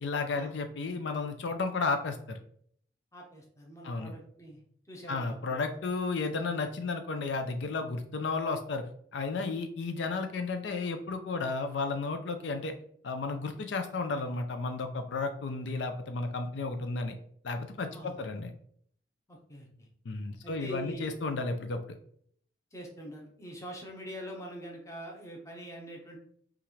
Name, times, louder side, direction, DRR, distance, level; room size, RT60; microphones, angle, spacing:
voice 1, 0.0-2.4 3.8-4.1 5.1-8.8 9.1-12.7 13.0-17.2 17.4-18.5 20.1-21.8, left 3 dB, 75° left, 6 dB, 0.5 m, -33 dB
voice 2, 3.1-4.6 4.9-5.6 17.9-18.2 19.3-19.9 20.4-21.1 22.7-26.2, right 1 dB, 15° left, 0 dB, 0.9 m, -44 dB
5.7 x 2.5 x 3.1 m, 0.62 s
head